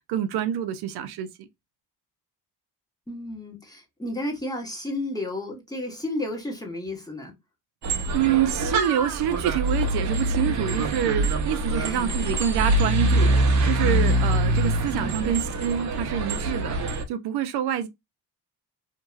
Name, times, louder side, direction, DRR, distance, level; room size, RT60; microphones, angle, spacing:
voice 1, 0.1-1.5 8.1-16.8 17.1-17.9, right 10 dB, 80° right, 0.6 m, -27 dB
voice 2, 3.1-7.3 11.8-12.3 12.8-12.9 14.9-15.4, left 1 dB, 10° left, 1.1 m, -33 dB
sound 1, 7.8-17.0, right 1 dB, 50° right, 0.8 m, -24 dB
2.9 x 2.7 x 2.3 m
cardioid pair, 100°, 38 cm